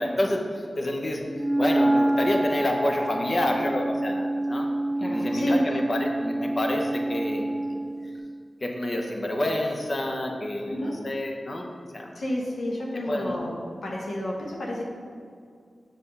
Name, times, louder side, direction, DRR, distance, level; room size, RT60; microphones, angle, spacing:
voice 1, 0.0-1.2 1.6-4.7 5.0-7.7 8.6-11.7 11.9-12.2 13.1-13.4, left 1 dB, 35° left, 2 dB, 0.9 m, -28 dB
Wind instrument woodwind instrument, 1.3-8.0, right 1 dB, 30° right, 1.1 m, -27 dB
voice 2, 5.0-5.6 10.7-10.9 12.1-13.5 13.8-14.8, left 1 dB, 65° left, -3 dB, 1.0 m, -30 dB
7.8 x 3.5 x 5.6 m, 2.2 s
wide cardioid pair, 90°, 0 cm